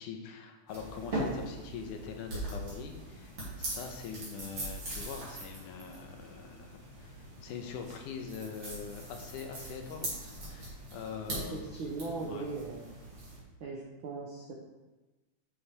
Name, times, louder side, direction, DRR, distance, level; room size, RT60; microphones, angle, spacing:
voice 1, 0.0-7.1 7.4-11.8 12.2-12.5, left 6 dB, 80° left, 4 dB, 2.4 m, -43 dB
sound 1, 0.7-13.4, right 1 dB, 45° right, 3.4 m, -41 dB
voice 2, 11.3-12.9 13.6-14.5, right 3 dB, 80° right, -1 dB, 1.1 m, -39 dB
8.9 x 6.9 x 3.4 m, 1.1 s
omnidirectional pair, 3.6 m